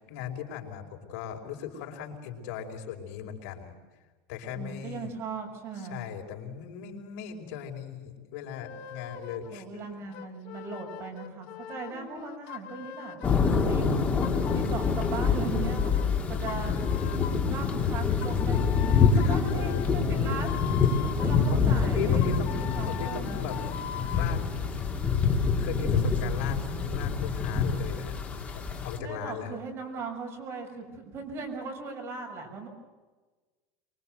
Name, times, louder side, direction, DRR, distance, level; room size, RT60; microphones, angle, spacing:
voice 1, 0.1-3.7 4.3-5.1 5.9-10.1 15.0-15.3 16.2-16.7 19.1-19.7 21.5-23.6 24.1-24.4 25.6-28.2 28.5-29.6, left 8 dB, 70° left, 3 dB, 5.3 m, -38 dB
voice 2, 4.5-6.0 9.5-14.0 14.5-16.7 17.5-18.6 18.9-22.2 22.6-23.5 29.0-32.7, right 4 dB, 30° right, 2 dB, 6.3 m, -39 dB
sound 1, 8.5-9.5 10.1-13.5 14.2-16.1 16.5-17.5 18.2-21.5 22.2-24.4, left 11 dB, 50° left, 1.7 m, -41 dB
sound 2, 13.2-29.0, left 5 dB, 15° left, 2.7 m, -26 dB
24.5 x 24.5 x 7.9 m, 1.3 s
supercardioid pair, 165°, 9 cm